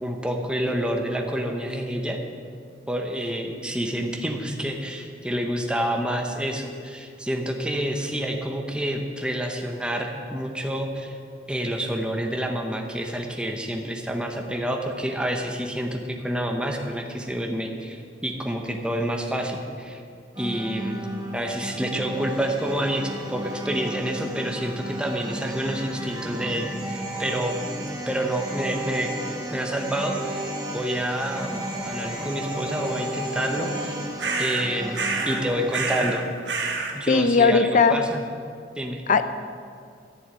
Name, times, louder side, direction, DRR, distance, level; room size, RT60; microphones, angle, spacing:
voice 1, 0.0-2.2 2.9-11.2 11.5-20.0 20.4-21.0 21.3-27.7 28.1-29.1 29.5-30.4 30.7-34.0 34.4-35.0 35.3-36.3 36.9-38.2 38.8-39.0, right 1 dB, 5° right, 2 dB, 0.9 m, -28 dB
sound 1, 20.4-36.2, right 1 dB, 25° right, 1.6 m, -33 dB
sound 2, 34.2-34.7 34.9-35.4 35.7-36.2 36.5-37.0, right 4 dB, 70° right, 1.4 m, -27 dB
voice 2, 37.1-37.9 39.1-39.2, left 4 dB, 45° left, 11 dB, 0.6 m, -18 dB
11.0 x 7.1 x 9.0 m, 2.3 s
head